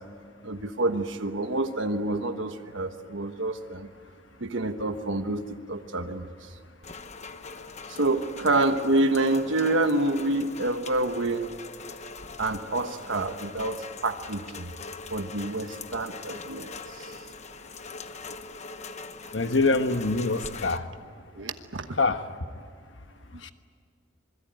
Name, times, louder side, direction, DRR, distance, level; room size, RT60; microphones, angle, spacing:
voice 1, 0.4-3.9 4.4-6.5 7.9-11.5 12.4-14.7 15.1-17.1 21.4-21.9, right 2 dB, 80° right, 7 dB, 1.3 m, -28 dB
Rain, 6.8-20.8, left 4 dB, 40° left, 1.1 m, -42 dB
voice 2, 19.3-20.8 22.0-22.2 23.4-23.5, left 3 dB, 75° left, 8 dB, 1.3 m, -24 dB
26.5 x 21.5 x 9.2 m, 2.1 s
head